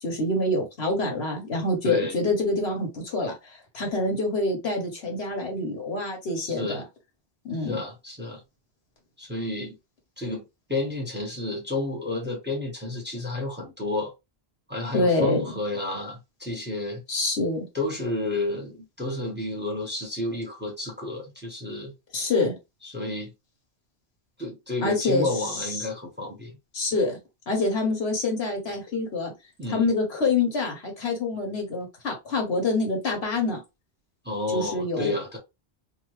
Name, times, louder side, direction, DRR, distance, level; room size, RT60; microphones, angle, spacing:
voice 1, 0.0-6.8 7.4-7.8 14.9-15.6 17.1-17.6 22.1-22.5 24.8-25.9 26.7-27.2 27.5-29.3 29.7-33.6 34.5-35.2, left 2 dB, 70° left, 1.2 m, -26 dB
voice 2, 1.8-2.1 6.4-6.8 7.6-8.4 9.2-9.7 10.2-14.1 14.7-17.0 17.7-21.9 22.8-23.3 24.4-26.5 29.6-29.9 34.2-35.4, left 2 dB, 10° right, 0.9 m, -31 dB
2.6 x 2.5 x 3.1 m
omnidirectional pair, 1.1 m